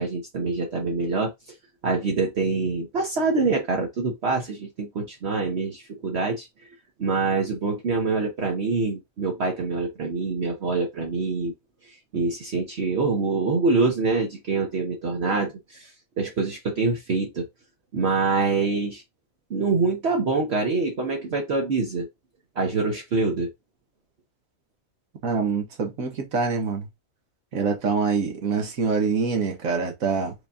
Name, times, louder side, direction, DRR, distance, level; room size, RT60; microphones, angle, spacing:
voice 1, 0.0-1.3 1.8-6.5 7.0-11.5 12.1-15.9 16.2-17.5 17.9-19.0 19.5-22.1 22.6-23.5, right 3 dB, 55° right, 1.1 m, -25 dB
voice 2, 25.2-26.9 27.5-30.3, right 5 dB, 80° right, 1.7 m, -25 dB
5.0 x 2.7 x 3.5 m
omnidirectional pair, 1.4 m